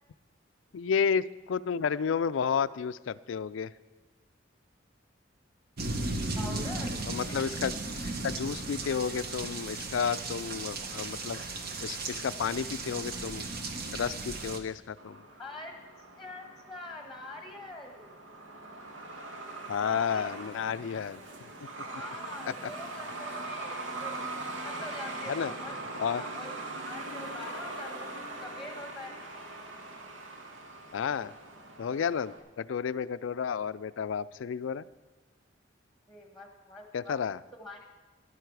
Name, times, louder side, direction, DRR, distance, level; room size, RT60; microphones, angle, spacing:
voice 1, 0.7-3.7 7.1-7.8 8.0-11.4 11.8-13.5 13.9-15.2 19.7-21.2 22.4-22.5 25.3-25.5 26.0-26.2 30.9-31.3 31.8-34.8 36.9-37.4, left 6 dB, 80° left, 16 dB, 0.4 m, -31 dB
sound 1, 5.8-14.6, right 2 dB, 55° right, 1.1 m, -36 dB
voice 2, 6.4-7.0 7.3-7.4 15.4-15.8 16.2-18.2 19.8-20.4 21.8-24.4 24.6-25.8 26.1-29.1 36.1-37.2 37.5-37.8, left 2 dB, ahead, 3 dB, 1.3 m, -45 dB
Truck, 15.0-32.4, right 2 dB, 85° right, 1.4 m, -41 dB
14.0 x 11.5 x 4.7 m, 1.2 s
head